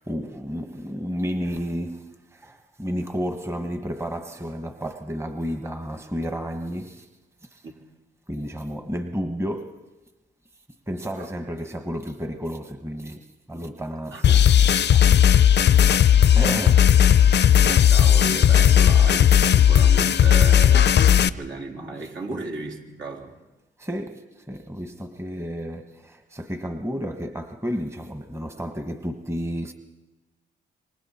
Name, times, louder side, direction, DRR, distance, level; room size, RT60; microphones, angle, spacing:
voice 1, 0.0-7.1 7.4-7.7 8.3-9.9 10.9-15.3 15.6-16.0 16.3-17.1 22.3-22.4 23.8-29.7, equal, 15° right, 1.3 m, -32 dB
voice 2, 14.1-14.6 17.6-23.4, right 3 dB, 70° right, 3.9 m, -35 dB
sound 1, 14.2-21.3, left 9 dB, 60° left, 0.6 m, -16 dB
27.0 x 24.5 x 4.4 m
cardioid pair, 85°, 20 cm